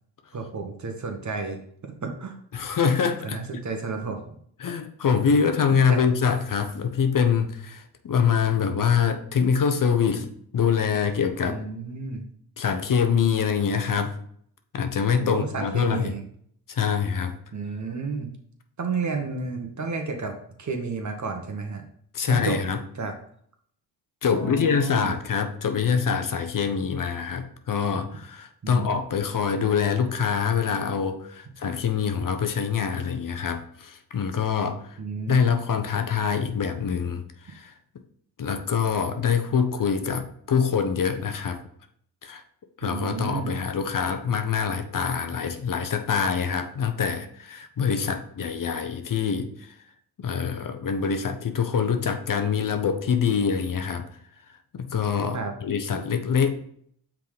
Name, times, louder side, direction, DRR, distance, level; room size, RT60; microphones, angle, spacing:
voice 1, 0.3-2.3 3.2-4.2 5.7-6.0 11.4-12.2 15.2-16.2 17.5-18.3 18.8-21.8 22.3-22.6 23.0-23.1 24.3-25.2 28.6-28.9 35.0-35.5 42.8-43.6 55.3-55.5, right 4 dB, 45° right, 4 dB, 1.4 m, -31 dB
voice 2, 2.5-3.4 4.6-11.6 12.6-14.1 14.7-16.1 16.7-17.4 22.1-22.8 24.2-35.0 35.3-37.7 38.4-41.6 42.2-42.4 42.8-49.7 50.2-54.0 54.7-56.6, left 6 dB, 50° left, 7 dB, 0.9 m, -25 dB
5.8 x 3.7 x 5.1 m, 0.64 s
supercardioid pair, 55°, 41 cm